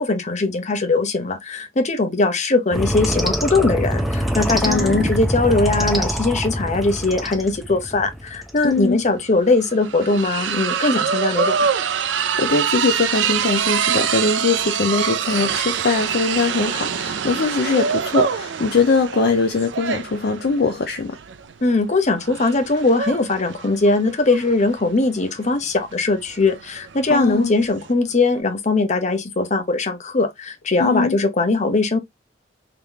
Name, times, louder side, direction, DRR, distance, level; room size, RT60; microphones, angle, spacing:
voice 1, 0.0-11.7 21.6-32.0, left 3 dB, 40° left, 0.8 m, -20 dB
sound 1, 2.7-8.7, equal, ahead, 0.8 m, -24 dB
voice 2, 4.6-5.1 8.6-9.0 12.4-21.2 27.1-27.5 30.8-31.2, left 4 dB, 60° left, 0.5 m, -21 dB
sound 2, 8.7-8.8 9.0-27.9, right 7 dB, 70° right, 0.5 m, -25 dB
3.6 x 3.0 x 3.5 m
head